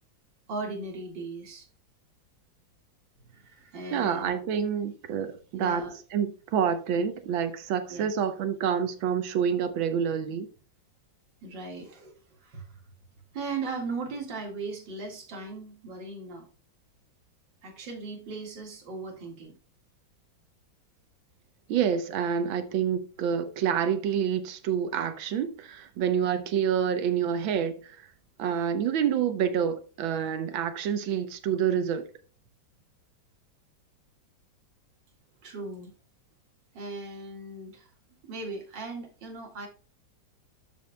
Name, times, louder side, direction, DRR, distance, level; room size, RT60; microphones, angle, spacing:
voice 1, 0.5-1.7 3.3-4.3 5.6-6.0 7.9-8.1 11.4-12.1 12.4-12.8 13.3-16.5 17.6-19.6 35.4-35.9 36.7-37.9 38.2-39.7, right 3 dB, 65° right, 2.6 m, -38 dB
voice 2, 3.9-5.8 6.1-10.5 21.7-28.0 28.4-32.0, right 8 dB, 85° right, 1.7 m, -27 dB
12.5 x 6.1 x 2.2 m
omnidirectional pair, 2.1 m